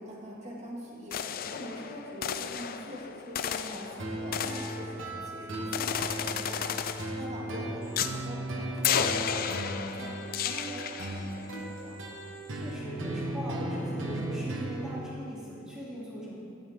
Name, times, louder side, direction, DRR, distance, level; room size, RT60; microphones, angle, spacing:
voice 1, 0.0-12.0, equal, 30° right, -4 dB, 2.2 m, -44 dB
sound 1, 1.1-5.3 5.7-7.3 8.0-8.2 8.8-11.4, left 8 dB, 45° left, 0.4 m, -33 dB
sound 2, 4.0-15.0, right 1 dB, 70° right, 1.2 m, -36 dB
sound 3, 5.5-6.3 6.8-8.2 8.8-10.2 10.8-12.2, left 1 dB, 75° left, 1.6 m, -48 dB
voice 2, 12.5-16.4, right 1 dB, 5° right, -9 dB, 2.9 m, -40 dB
12.5 x 12.0 x 3.7 m, 2.5 s
head